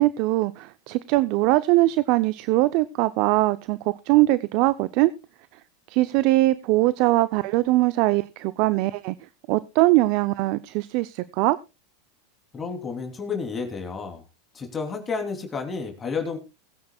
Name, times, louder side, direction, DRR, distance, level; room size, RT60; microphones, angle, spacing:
voice 1, 0.0-5.1 5.9-9.1 9.5-11.6, right 19 dB, 55° right, 15 dB, 0.6 m, -21 dB
voice 2, 12.5-14.2 14.5-16.4, left 5 dB, 25° left, 3 dB, 3.1 m, -31 dB
21.0 x 9.4 x 2.3 m, 0.27 s
hypercardioid pair, 100°, 0 cm